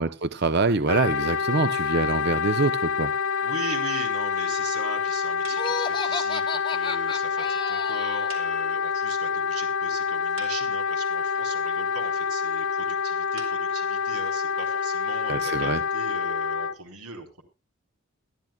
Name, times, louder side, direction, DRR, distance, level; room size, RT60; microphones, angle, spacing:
voice 1, 0.0-3.1 15.3-15.8, right 3 dB, 45° right, 0.8 m, -25 dB
Wind instrument woodwind instrument, 0.9-16.8, left 6 dB, 60° left, 0.6 m, -27 dB
voice 2, 3.4-17.4, right 4 dB, 90° right, 4.5 m, -39 dB
sound 1, 5.4-6.2 6.5-6.6 6.8-6.9 7.2-7.3 7.5-7.6 8.3-9.3 9.6-9.7 10.1-11.1 13.4-15.3, right 5 dB, 65° right, 4.1 m, -47 dB
Laughter, 5.5-8.3, left 4 dB, 20° left, 0.9 m, -33 dB
21.5 x 13.5 x 2.4 m
head